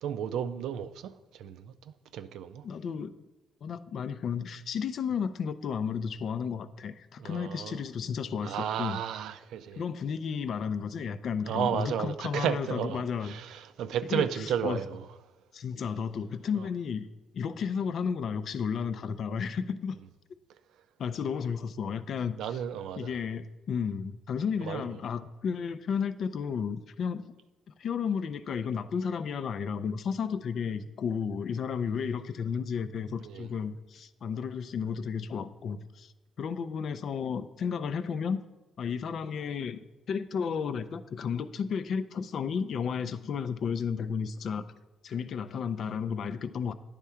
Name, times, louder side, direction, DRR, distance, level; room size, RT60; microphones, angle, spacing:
voice 1, 0.0-1.7 2.1-2.6 7.2-7.8 8.4-9.8 11.4-15.0 16.6-16.7 22.4-23.1 24.6-24.8 33.2-33.5, right 9 dB, 85° right, 0.4 m, -33 dB
voice 2, 2.6-3.2 3.6-9.0 9.8-13.4 14.1-14.8 15.5-17.1 17.3-20.0 21.0-22.6 23.0-27.2 27.8-36.1 36.4-38.4 38.8-39.8 40.1-44.7 45.0-46.7, left 6 dB, 60° left, 0.4 m, -33 dB
9.8 x 3.6 x 5.6 m
cardioid pair, 90°, 0 cm